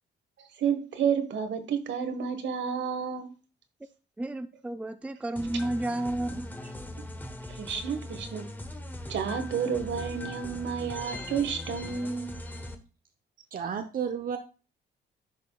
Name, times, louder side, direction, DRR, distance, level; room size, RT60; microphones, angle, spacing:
voice 1, 0.6-3.3 7.5-8.5 9.1-12.3, right 7 dB, 65° right, 1.4 m, -30 dB
voice 2, 4.2-6.7, right 1 dB, 5° right, 0.5 m, -32 dB
sound 1, 5.4-12.7, left 1 dB, 10° left, 1.1 m, -40 dB
voice 3, 13.5-14.4, right 7 dB, 45° right, 0.8 m, -32 dB
10.5 x 5.2 x 2.3 m
cardioid pair, 90°, 20 cm